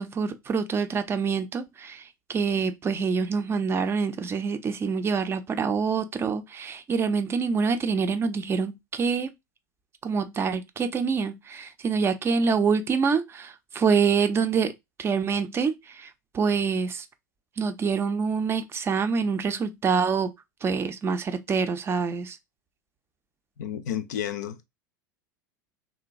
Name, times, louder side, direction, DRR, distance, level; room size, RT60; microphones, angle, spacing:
voice 1, 0.0-9.3 10.0-14.7 15.0-16.1 16.3-17.1 17.6-20.3 20.6-22.4, right 5 dB, 25° right, 0.4 m, -26 dB
voice 2, 23.6-24.7, left 10 dB, 65° left, 0.4 m, -31 dB
3.0 x 2.2 x 2.6 m
figure-of-eight pair, 80°, 10 cm